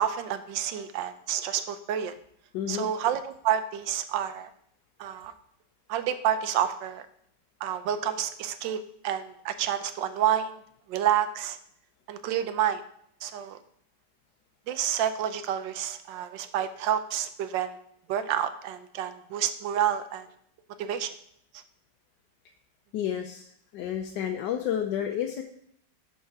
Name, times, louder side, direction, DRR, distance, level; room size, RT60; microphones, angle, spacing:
voice 1, 0.0-2.1 2.7-4.5 5.0-5.3 5.9-7.1 7.6-8.8 9.0-10.6 10.9-11.6 12.1-12.8 13.2-13.6 14.7-17.8 18.1-20.3 20.8-21.1, right 10 dB, 85° right, 12 dB, 1.4 m, -29 dB
voice 2, 2.5-2.9 22.9-25.4, left 9 dB, 80° left, 3 dB, 1.3 m, -31 dB
11.0 x 4.5 x 4.6 m, 0.67 s
omnidirectional pair, 1.9 m